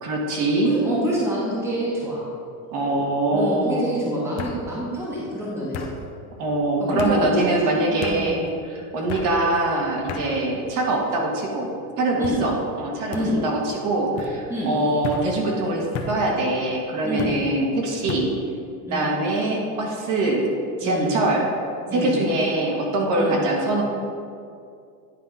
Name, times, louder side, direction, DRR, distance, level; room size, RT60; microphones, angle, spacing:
voice 1, 0.0-0.7 2.7-3.8 6.4-11.7 12.0-18.3 18.9-20.4 20.8-21.4 21.9-23.8, right 2 dB, 40° right, -1 dB, 1.3 m, -23 dB
voice 2, 0.6-2.3 3.3-5.9 6.8-8.4 12.2-12.4 13.1-13.4 14.5-14.7 17.0-17.4 18.9-19.1 20.8-21.1 21.9-22.2 23.2-23.4, equal, 5° right, -5 dB, 1.0 m, -27 dB
sound 1, 0.9-1.3 1.7-2.2 3.3-3.4 4.4-4.6 5.7-5.9 7.0-7.2 8.0-8.2 9.1-9.3 10.1-10.3 11.0-11.4 12.2-12.4 13.1-13.3 14.2-14.3 15.0-15.3 15.9-16.2 17.2-17.4 18.1-18.3, left 6 dB, 30° left, 0.6 m, -33 dB
9.8 x 3.8 x 5.3 m, 2.4 s
supercardioid pair, 150°, 50 cm